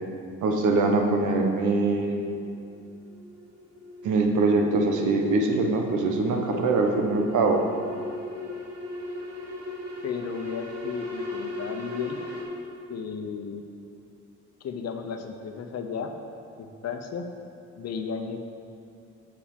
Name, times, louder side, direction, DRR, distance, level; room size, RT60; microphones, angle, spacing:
voice 1, 0.4-2.4 4.0-7.6, right 3 dB, 80° right, 3 dB, 1.2 m, -23 dB
sound 1, 2.4-12.4, left 2 dB, 60° right, 2.0 m, -38 dB
voice 2, 10.0-12.2 12.9-13.6 14.6-16.1 16.6-17.3 17.8-18.4, left 6 dB, 60° left, 5 dB, 0.9 m, -34 dB
7.4 x 5.9 x 7.2 m, 2.6 s
cardioid pair, 90°, 30 cm